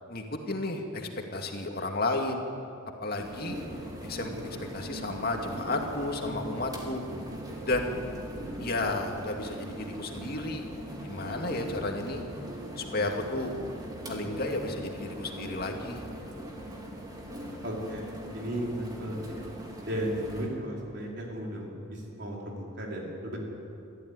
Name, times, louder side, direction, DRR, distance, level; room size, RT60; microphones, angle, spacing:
voice 1, 0.1-2.4 3.0-3.6 4.1-4.3 4.7-7.0 7.7-8.0 8.6-10.6 11.0-12.2 12.8-13.5 14.1-16.0, left 2 dB, 50° left, 2 dB, 2.3 m, -32 dB
sound 1, 3.2-20.5, equal, 20° right, 3.1 m, -41 dB
sound 2, 3.4-15.3, right 1 dB, 85° right, 2.0 m, -46 dB
voice 2, 17.6-18.0 18.3-19.3 19.8-23.4, equal, 55° right, -2 dB, 4.7 m, -35 dB
25.0 x 14.0 x 9.8 m, 2.7 s
head